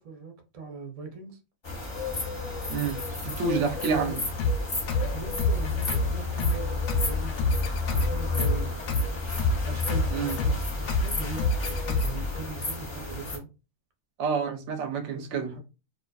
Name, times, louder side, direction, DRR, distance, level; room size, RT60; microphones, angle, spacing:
voice 1, 0.0-1.4 3.6-4.2 5.1-8.8 9.6-13.5 14.8-15.6, right 5 dB, 45° right, 0.4 m, -40 dB
sound 1, 1.6-13.4, left 4 dB, 30° left, 0.5 m, -32 dB
voice 2, 2.7-4.2 10.1-10.4 14.2-15.5, right 5 dB, 70° right, 0.8 m, -29 dB
sound 2, 4.4-12.4, left 2 dB, 70° left, 0.8 m, -28 dB
2.4 x 2.3 x 2.3 m
omnidirectional pair, 1.4 m